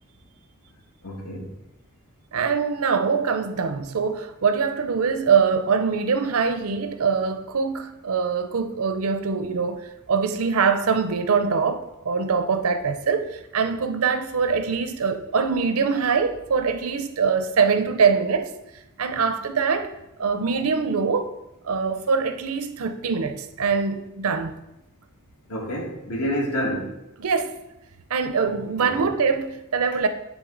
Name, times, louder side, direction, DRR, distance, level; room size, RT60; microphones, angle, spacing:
voice 1, 1.0-1.5 25.5-27.0 28.4-29.1, equal, 85° left, 1.9 m, -29 dB
voice 2, 2.3-18.5 19.0-19.9 20.2-21.3 21.6-24.6 27.2-27.5 28.1-30.1, right 5 dB, 75° right, 0.6 m, -23 dB
10.0 x 3.6 x 3.8 m
head